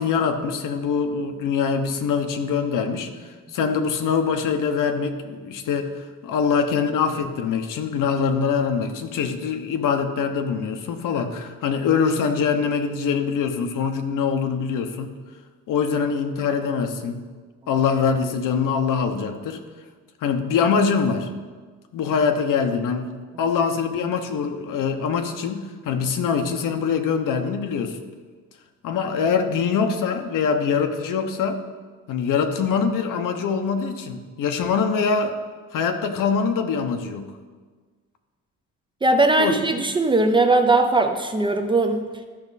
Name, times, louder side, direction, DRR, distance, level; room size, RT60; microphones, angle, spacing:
voice 1, 0.0-3.1 3.5-5.9 6.2-15.1 15.7-17.2 17.7-19.6 20.2-21.3 21.9-23.1 23.4-28.0 28.8-31.6 32.1-35.4 35.7-37.3 39.4-39.6, left 6 dB, 75° left, 6 dB, 1.0 m, -23 dB
voice 2, 39.0-42.0, right 2 dB, 15° right, 5 dB, 0.5 m, -19 dB
13.0 x 6.0 x 4.1 m, 1.4 s
cardioid pair, 155°, 32 cm